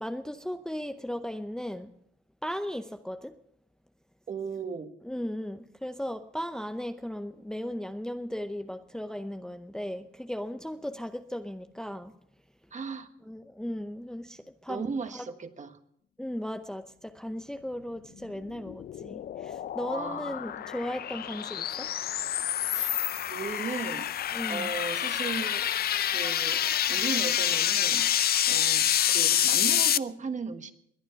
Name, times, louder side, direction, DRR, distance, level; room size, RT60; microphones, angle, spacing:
voice 1, 0.0-1.9 2.4-3.3 5.1-12.1 13.3-14.8 15.1-15.2 16.2-21.9 24.3-24.7, equal, 5° left, 8 dB, 0.7 m, -36 dB
voice 2, 4.3-4.9 12.7-13.1 14.7-15.8 19.9-20.5 22.7-22.9 23.3-24.1 24.5-25.7 26.1-30.7, right 5 dB, 40° right, 8 dB, 1.4 m, -36 dB
sound 1, 18.3-30.0, left 10 dB, 50° left, 0.5 m, -27 dB
21.0 x 9.2 x 5.8 m, 0.72 s
cardioid pair, 90°, 20 cm